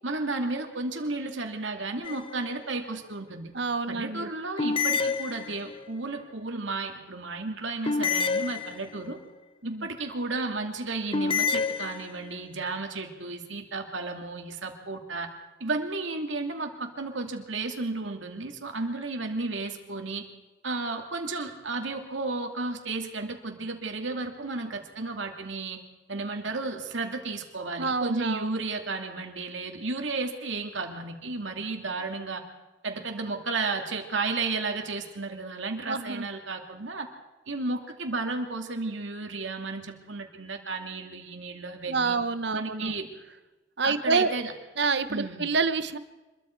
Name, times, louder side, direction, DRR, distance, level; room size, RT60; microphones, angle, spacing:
voice 1, 0.0-3.5 3.9-9.2 9.6-15.3 15.6-20.3 20.6-25.8 26.1-32.4 32.8-37.1 37.5-42.2 42.5-43.1 43.8-44.5 45.1-45.4, right 3 dB, 90° right, 4 dB, 2.6 m, -33 dB
sound 1, 2.0-2.6 4.6-5.9 7.8-9.2 11.1-12.4, left 5 dB, 30° left, 0.6 m, -29 dB
voice 2, 3.5-4.3 9.6-9.9 27.8-28.6 35.9-36.3 41.9-42.9 43.8-44.3 44.8-46.0, right 4 dB, 70° right, 12 dB, 1.1 m, -27 dB
26.0 x 22.0 x 4.6 m, 1.2 s
head